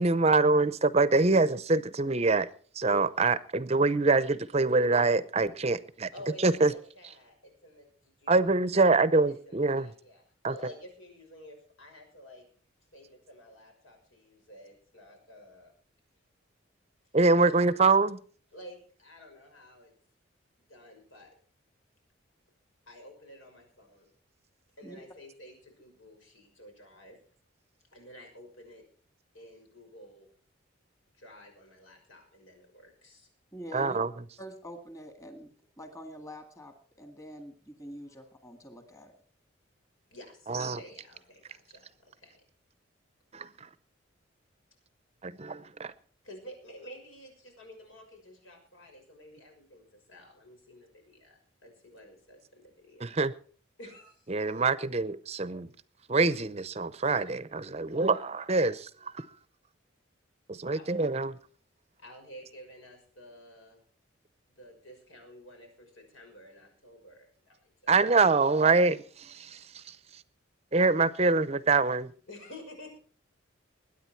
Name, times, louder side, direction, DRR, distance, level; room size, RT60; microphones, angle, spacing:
voice 1, 0.0-2.5 2.8-6.1 6.4-6.7 8.3-9.9 10.4-10.5 17.1-18.2 33.7-34.1 40.5-40.8 43.3-43.5 45.2-45.9 53.0-53.3 54.3-55.7 56.1-59.3 60.5-61.3 67.9-70.0 70.7-72.1, right 3 dB, 30° right, 0.6 m, -25 dB
voice 2, 6.1-8.5 9.4-12.5 12.9-15.7 18.5-19.9 20.7-21.3 22.9-24.1 24.8-27.2 27.9-28.8 29.3-30.3 31.1-33.3 38.1-38.2 40.1-42.4 46.2-53.2 53.8-54.4 57.8-58.2 60.7-61.0 62.0-63.8 64.5-67.9 72.3-72.9, equal, 85° left, 6.0 m, -51 dB
voice 3, 33.5-34.0 34.4-39.2, equal, 15° left, 1.8 m, -45 dB
21.5 x 9.7 x 4.5 m
head